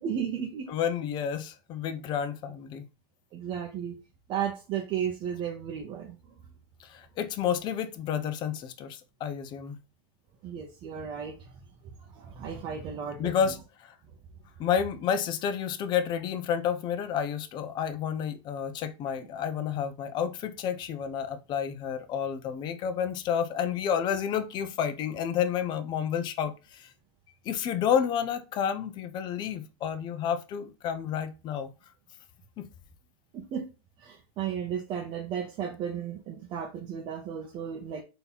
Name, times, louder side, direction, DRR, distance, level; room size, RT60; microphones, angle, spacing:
voice 1, 0.0-0.7 3.3-4.0 4.3-6.2 10.4-11.5 12.0-13.3 33.3-33.7 34.0-38.0, right 8 dB, 35° right, 0.7 m, -34 dB
voice 2, 0.7-2.8 6.8-9.8 13.2-13.6 14.6-26.9 27.5-31.7 32.6-32.7, left 8 dB, 30° left, 0.6 m, -30 dB
3.9 x 2.8 x 4.0 m
hypercardioid pair, 125°, 14 cm